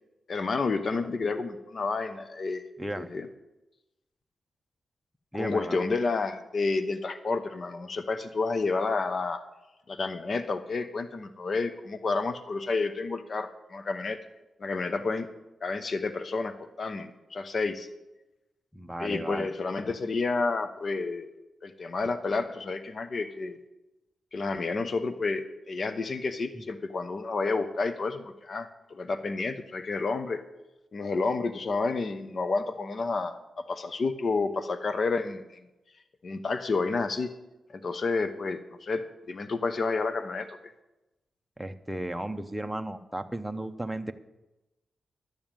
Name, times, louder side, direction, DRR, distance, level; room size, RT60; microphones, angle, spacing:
voice 1, 0.3-2.6 3.0-3.3 5.3-9.4 9.9-14.2 14.6-15.3 15.6-17.9 19.0-21.3 21.6-23.6 24.3-30.4 30.9-33.3 33.7-35.6 36.2-37.3 37.7-40.7, left 3 dB, 50° left, 10 dB, 0.9 m, -30 dB
voice 2, 2.8-3.1 5.3-5.8 18.7-19.5 41.6-44.1, right 1 dB, 5° right, 6 dB, 0.7 m, -34 dB
11.0 x 7.1 x 9.1 m, 0.99 s
cardioid pair, 95°, 0 cm